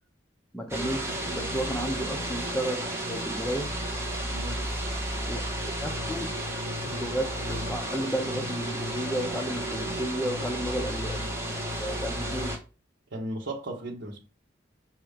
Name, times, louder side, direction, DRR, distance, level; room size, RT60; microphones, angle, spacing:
voice 1, 0.5-3.7 5.3-5.4 5.8-6.3 6.8-12.6, right 1 dB, 5° left, 0.6 m, -33 dB
sound 1, 0.7-12.6, right 1 dB, 15° right, 1.7 m, -32 dB
voice 2, 4.3-4.7 13.1-14.2, right 1 dB, 75° right, 1.2 m, -36 dB
6.4 x 3.0 x 5.1 m
head